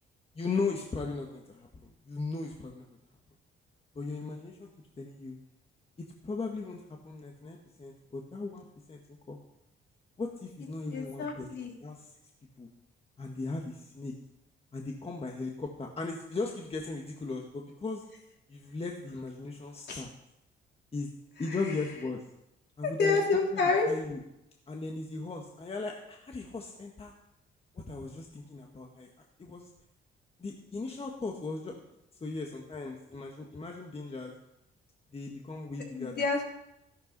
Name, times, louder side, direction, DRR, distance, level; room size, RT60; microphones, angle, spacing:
voice 1, 0.3-2.9 3.9-4.7 5.0-5.4 6.2-9.4 10.2-12.1 12.6-12.7 13.2-14.1 14.7-18.0 18.5-20.1 20.9-21.1 21.4-22.2 22.8-23.2 23.5-24.2 24.7-27.1 27.7-29.1 29.4-29.7 30.4-31.7 32.2-34.3 35.1-36.3, left 3 dB, 30° left, 1 dB, 1.6 m, -37 dB
voice 2, 10.9-11.7 19.9-20.0 22.8-23.9 36.0-36.4, left 4 dB, 60° left, -1 dB, 3.6 m, -28 dB
13.5 x 11.5 x 4.1 m, 0.85 s
cardioid pair, 90°, 20 cm